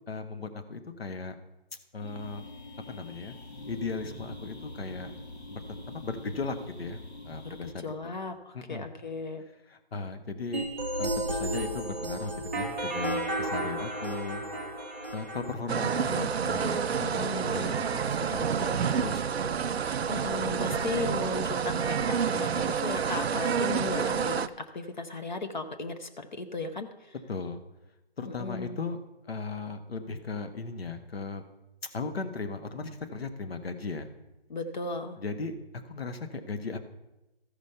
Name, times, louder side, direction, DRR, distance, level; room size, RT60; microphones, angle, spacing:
voice 1, 0.1-1.3 1.9-2.5 2.9-3.3 3.7-5.1 5.5-7.0 7.3-8.2 8.5-8.9 9.6-10.7 11.0-14.4 15.1-17.2 17.5-19.6 20.6-20.9 27.3-27.6 28.2-29.0 29.2-31.4 31.8-34.1 35.2-35.6 35.8-36.8, left 4 dB, 70° left, 8 dB, 1.2 m, -37 dB
sound 1, 2.0-7.7, left 2 dB, 85° left, 2.1 m, -44 dB
voice 2, 7.8-9.4 17.0-17.6 20.1-27.1 28.3-28.8 34.5-35.2, left 3 dB, 45° left, 7 dB, 0.7 m, -36 dB
sound 2, 10.5-15.5, right 1 dB, 15° right, 0.5 m, -32 dB
sound 3, 15.7-24.5, right 7 dB, 75° right, 0.6 m, -29 dB
14.0 x 5.1 x 5.5 m, 0.99 s
hypercardioid pair, 165°, 32 cm